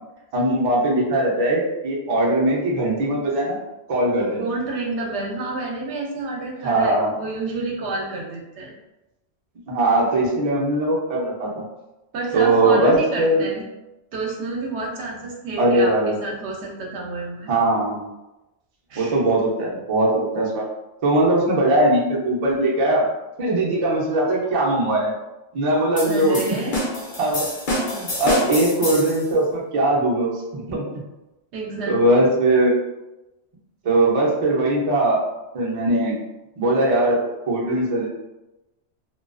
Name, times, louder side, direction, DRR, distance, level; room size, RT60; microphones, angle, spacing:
voice 1, 0.3-3.6 3.9-4.5 6.6-7.1 9.7-11.6 12.3-13.5 15.6-16.2 17.5-18.1 19.0-20.6 21.0-23.1 23.4-25.1 25.5-26.6 27.2-27.5 27.9-30.9 31.9-32.7 33.8-35.2 35.5-36.2 36.6-37.2 37.5-38.1, right 1 dB, 45° right, -4 dB, 0.5 m, -20 dB
voice 2, 4.4-8.7 12.1-13.6 14.1-17.5 18.9-19.2 26.1-26.8 31.5-32.3, right 3 dB, 75° right, -1 dB, 0.8 m, -29 dB
sound 1, 26.0-29.2, left 1 dB, 50° left, 0.7 m, -27 dB
2.3 x 2.2 x 2.3 m, 1.0 s
omnidirectional pair, 1.2 m